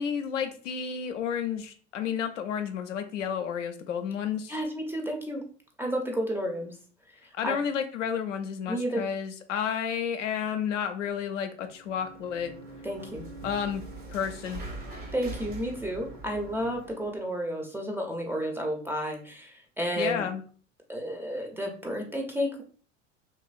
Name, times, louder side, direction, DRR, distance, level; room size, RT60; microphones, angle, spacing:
voice 1, 0.0-4.6 7.3-12.5 13.4-13.8 14.1-14.7 20.0-20.4, left 7 dB, 75° left, 6 dB, 0.5 m, -31 dB
voice 2, 4.5-5.4 5.8-6.8 7.4-7.6 8.7-9.1 12.8-13.3 15.1-20.3 20.9-22.6, equal, 5° right, 1 dB, 0.4 m, -31 dB
sound 1, 11.7-17.2, right 2 dB, 75° right, 0.9 m, -42 dB
2.9 x 2.5 x 2.4 m, 0.42 s
figure-of-eight pair, 70°, 37 cm